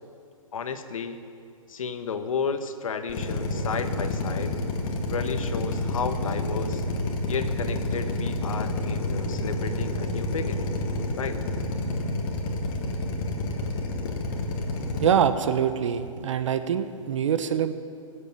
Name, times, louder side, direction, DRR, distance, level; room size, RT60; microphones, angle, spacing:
voice 1, 0.5-1.2 1.7-4.6 5.1-6.8 7.3-10.7 11.2-11.4, left 5 dB, 70° left, 9 dB, 1.2 m, -32 dB
Drill, 3.1-15.1, left 2 dB, 40° left, 2.1 m, -29 dB
voice 2, 15.0-17.7, right 8 dB, 60° right, 10 dB, 1.1 m, -24 dB
24.5 x 8.2 x 5.9 m, 2.3 s
hypercardioid pair, 130°, 18 cm